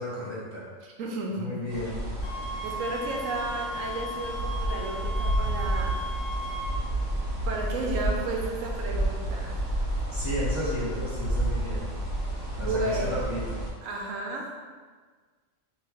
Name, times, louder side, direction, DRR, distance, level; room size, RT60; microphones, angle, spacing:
voice 1, 0.0-0.7 1.4-2.1 10.1-11.9 12.6-13.6, left 1 dB, 35° left, -9 dB, 0.5 m, -33 dB
voice 2, 0.8-1.5 2.6-6.0 7.5-9.6 12.6-13.1 13.8-14.6, right 2 dB, 80° right, 0 dB, 1.0 m, -33 dB
sound 1, 1.7-13.7, right 1 dB, 45° right, 1.8 m, -31 dB
sound 2, 2.2-6.8, equal, 85° left, 1.0 m, -36 dB
3.8 x 2.8 x 2.9 m, 1.5 s
omnidirectional pair, 1.4 m